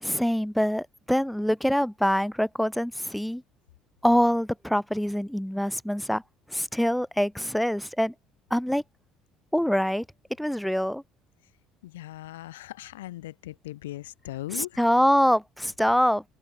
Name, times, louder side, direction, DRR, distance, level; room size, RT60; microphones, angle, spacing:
voice 1, 0.0-3.4 4.0-6.2 6.5-8.1 8.5-8.8 9.5-10.0 10.4-11.0 14.5-16.2, equal, ahead, 1.2 m, -24 dB
voice 2, 11.8-14.8, left 16 dB, 70° left, 1.1 m, -39 dB
figure-of-eight pair, 55°, 0 cm